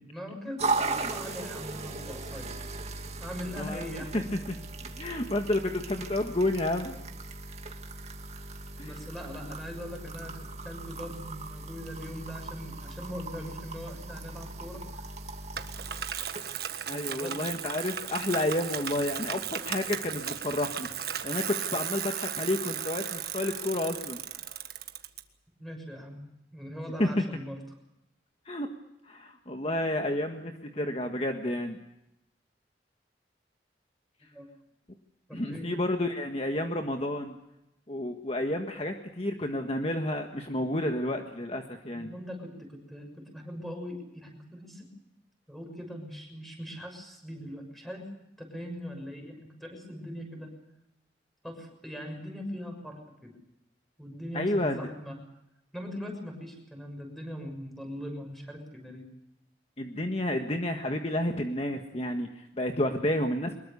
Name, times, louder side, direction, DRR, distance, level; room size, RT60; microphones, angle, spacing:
voice 1, 0.1-2.7 3.2-4.2 8.8-15.0 17.1-17.4 25.6-26.2 26.5-27.6 34.3-34.5 35.3-35.7 41.9-44.9 45.5-48.1 48.4-50.5 51.4-53.3 54.0-55.2 55.7-59.0, equal, ahead, 3 dB, 6.5 m, -41 dB
sound 1, 0.6-19.4, right 3 dB, 40° right, 2.1 m, -38 dB
voice 2, 3.5-4.4 4.9-7.0 8.8-9.0 16.9-20.9 21.2-24.2 27.0-27.2 28.4-28.7 29.1-31.8 35.3-37.4 37.9-42.1 54.3-54.8 59.8-63.6, left 1 dB, 35° left, 4 dB, 1.6 m, -30 dB
Bicycle, 15.6-25.2, right 9 dB, 60° right, 1.6 m, -36 dB
24.0 x 21.5 x 6.9 m, 0.86 s
head